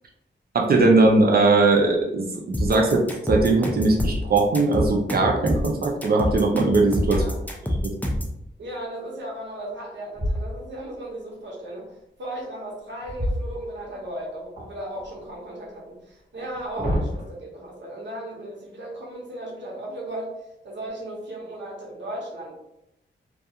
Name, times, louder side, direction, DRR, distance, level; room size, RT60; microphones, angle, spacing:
voice 1, 0.5-7.2 7.7-7.9, right 3 dB, 55° right, 0 dB, 0.5 m, -20 dB
sound 1, 2.5-8.4, equal, 10° left, 0.4 m, -27 dB
sound 2, 3.8-4.7 6.4-8.1 10.1-10.9 13.0-14.1 14.6-15.3 16.3-17.2, equal, 30° right, 1.3 m, -30 dB
voice 2, 8.6-11.9 12.2-22.6, right 1 dB, 70° right, -3 dB, 0.9 m, -36 dB
2.3 x 2.3 x 2.8 m, 0.84 s
wide cardioid pair, 125°, 19 cm